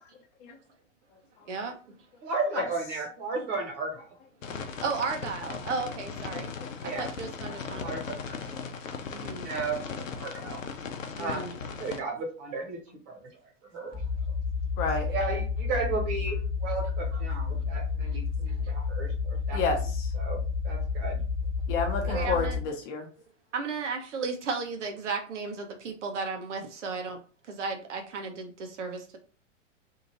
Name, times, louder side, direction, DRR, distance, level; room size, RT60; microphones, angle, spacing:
voice 1, 2.2-4.1 6.8-7.1 7.8-8.4 9.4-10.6 11.2-11.5 11.7-12.8 13.1-13.2 13.7-14.0 15.1-19.6 20.1-21.2 22.0-22.3, right 3 dB, 45° right, 1 dB, 1.5 m, -34 dB
sound 1, 4.4-12.0, left 5 dB, 85° left, 0.6 m, -38 dB
voice 2, 4.8-6.5 7.0-7.9 9.1-9.5 11.2-11.6 22.1-22.6 23.5-27.2 27.5-28.5 28.8-29.2, right 4 dB, 70° right, 4 dB, 0.9 m, -34 dB
sound 2, 13.9-22.6, left 5 dB, 10° right, 0.6 m, -30 dB
voice 3, 14.8-15.1 19.5-20.1 21.7-23.0, left 4 dB, 35° left, 3 dB, 0.8 m, -30 dB
2.8 x 2.5 x 3.0 m, 0.37 s
hypercardioid pair, 105°, 38 cm